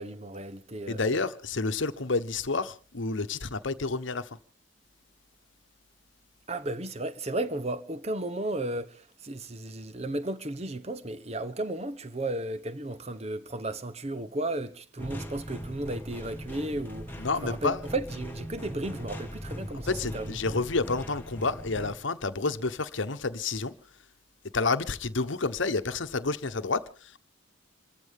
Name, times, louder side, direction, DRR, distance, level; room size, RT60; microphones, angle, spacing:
voice 1, 0.0-1.2 6.5-20.4, right 2 dB, 30° right, 0.9 m, -34 dB
voice 2, 0.9-4.3 17.2-17.8 19.9-23.7 24.5-27.2, left 3 dB, 65° left, 1.0 m, -29 dB
sound 1, 15.0-22.0, equal, 10° left, 1.6 m, -40 dB
27.0 x 14.5 x 3.6 m
head